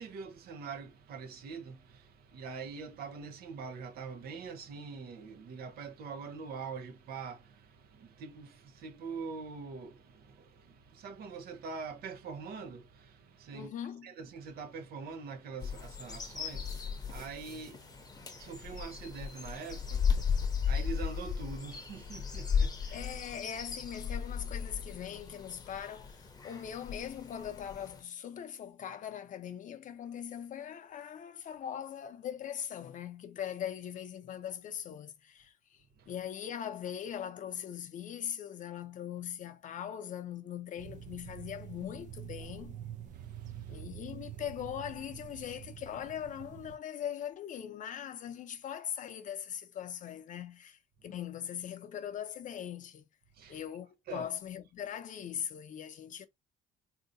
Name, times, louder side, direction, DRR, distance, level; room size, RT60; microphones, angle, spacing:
voice 1, 0.0-13.7 14.0-23.0 36.0-36.1 43.1-43.8 53.3-53.6 54.1-54.3, right 5 dB, 65° right, 0.8 m, -44 dB
voice 2, 13.5-14.1 22.9-42.8 43.7-53.1 53.5-56.3, left 9 dB, 50° left, 0.6 m, -41 dB
sound 1, 15.6-28.0, left 6 dB, 20° left, 0.8 m, -36 dB
sound 2, 40.8-46.8, right 10 dB, 45° right, 0.4 m, -46 dB
3.8 x 2.8 x 2.6 m
cardioid pair, 110°, 17 cm